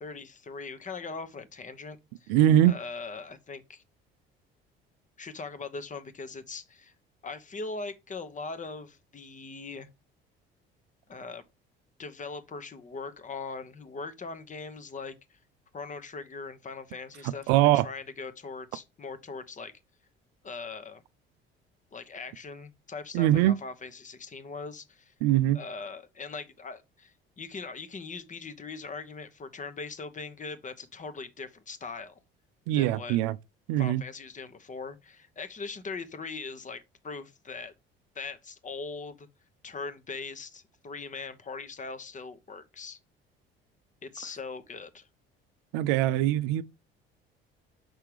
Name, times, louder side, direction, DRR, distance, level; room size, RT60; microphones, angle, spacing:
voice 1, 0.0-2.3 2.6-3.8 5.2-6.9 7.2-9.9 11.1-11.4 12.0-15.4 15.7-19.7 20.4-21.0 21.9-25.1 25.5-32.2 32.7-33.2 33.8-37.7 38.1-39.3 39.6-43.0 44.0-45.1, left 4 dB, 25° left, 1.0 m, -40 dB
voice 2, 2.3-2.8 17.2-17.9 23.1-23.6 25.2-25.6 32.7-33.4 33.7-34.0 45.7-46.6, right 13 dB, 55° right, 0.5 m, -22 dB
6.1 x 5.7 x 3.2 m
figure-of-eight pair, 55°, 30 cm